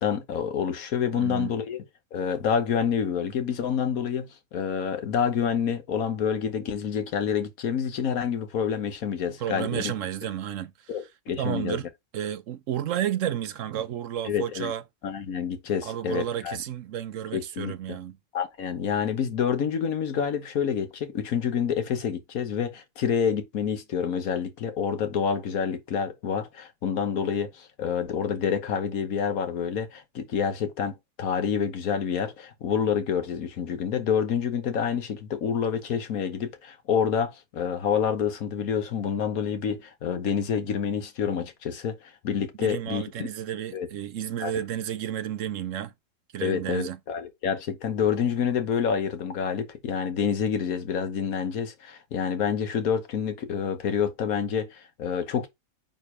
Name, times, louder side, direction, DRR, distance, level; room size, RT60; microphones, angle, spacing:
voice 1, 0.0-1.8 2.1-9.9 10.9-11.8 14.2-14.7 15.0-16.6 17.3-18.0 18.3-43.3 43.7-43.9 44.4-44.5 46.4-55.5, left 7 dB, 85° left, 1.5 m, -28 dB
voice 2, 1.1-1.5 9.4-10.7 11.4-11.9 12.1-14.8 15.8-18.2 42.6-45.9 46.3-47.0, right 10 dB, 70° right, 1.0 m, -31 dB
9.2 x 3.4 x 3.3 m
omnidirectional pair, 1.4 m